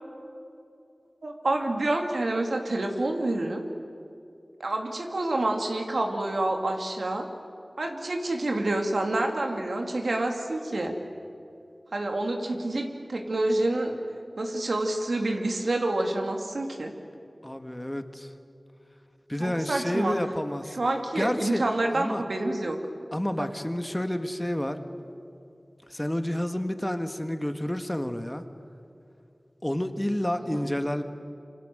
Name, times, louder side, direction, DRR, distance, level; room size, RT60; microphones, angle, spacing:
voice 1, 1.2-3.6 4.6-7.3 7.8-10.9 11.9-13.9 14.4-16.9 19.4-20.2 20.7-22.8 23.4-23.5 30.3-30.7, right 2 dB, 90° right, 3 dB, 2.9 m, -28 dB
voice 2, 17.4-18.3 19.3-20.8 21.1-21.6 21.9-22.2 23.1-24.8 25.9-28.4 29.6-31.0, left 1 dB, 15° left, 7 dB, 1.7 m, -29 dB
27.5 x 26.0 x 7.9 m, 2.6 s
wide cardioid pair, 55°, 0 cm